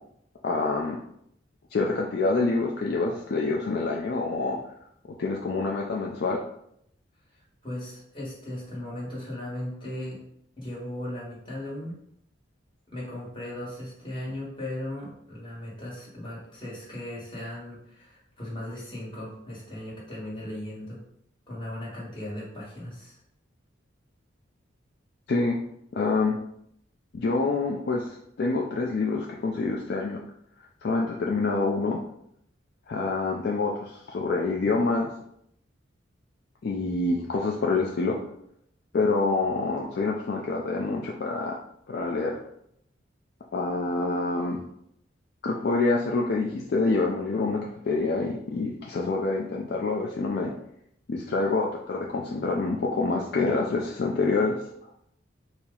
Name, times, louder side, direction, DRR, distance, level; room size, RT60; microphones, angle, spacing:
voice 1, 0.4-1.0 1.7-4.6 5.2-6.4 25.3-25.6 25.9-26.4 27.1-30.2 30.8-32.0 32.9-35.1 36.6-38.2 38.9-41.6 41.9-42.4 43.5-44.6 45.4-50.5 51.1-54.5, left 3 dB, 55° left, -1 dB, 0.3 m, -26 dB
voice 2, 7.3-10.2 10.6-12.0 12.9-21.0 21.5-23.2, left 1 dB, 25° left, -6 dB, 1.3 m, -37 dB
4.3 x 2.0 x 3.7 m, 0.73 s
head